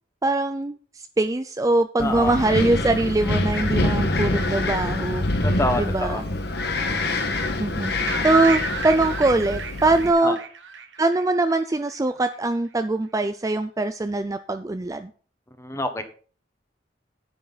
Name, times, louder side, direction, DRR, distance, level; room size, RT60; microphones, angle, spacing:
voice 1, 0.2-0.8 1.2-6.2 7.6-10.4 11.0-15.1, right 2 dB, 20° right, 9 dB, 0.4 m, -22 dB
Wind, 2.0-10.1, left 2 dB, 60° left, 1.4 m, -25 dB
voice 2, 2.0-2.3 5.4-6.2 10.2-10.3 15.6-16.0, left 1 dB, 15° left, 8 dB, 1.3 m, -26 dB
sound 1, 8.1-11.9, right 5 dB, 85° right, 1.3 m, -33 dB
9.9 x 9.2 x 4.0 m, 0.41 s
head